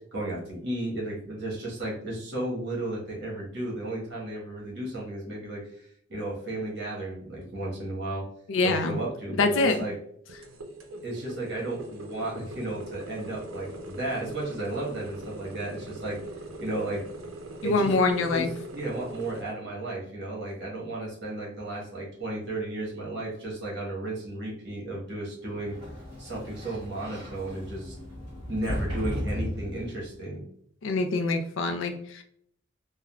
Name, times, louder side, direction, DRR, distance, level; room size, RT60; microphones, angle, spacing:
voice 1, 0.1-8.3 8.6-9.9 11.0-16.2 16.6-17.0 17.6-17.9 18.2-18.5 18.7-25.8 26.2-28.0 28.5-30.4, right 1 dB, 55° right, -5 dB, 1.2 m, -34 dB
voice 2, 8.5-9.0 9.4-9.9 17.6-18.5 30.8-32.2, left 3 dB, 70° left, 6 dB, 0.4 m, -25 dB
sound 1, 10.3-19.4, right 1 dB, 85° right, 0.5 m, -41 dB
Sliding door, 25.5-30.2, equal, 25° right, 1.2 m, -36 dB
3.5 x 2.1 x 2.3 m, 0.66 s
head